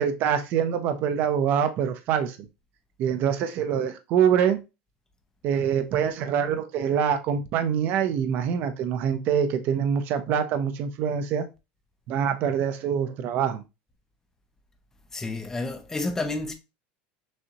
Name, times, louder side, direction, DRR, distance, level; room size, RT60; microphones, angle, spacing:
voice 1, 0.0-2.4 3.0-4.6 5.4-11.5 12.1-13.6, right 8 dB, 40° right, 0.6 m, -25 dB
voice 2, 15.1-16.5, left 2 dB, 10° left, 0.7 m, -30 dB
6.2 x 2.7 x 2.9 m
cardioid pair, 165°, 5 cm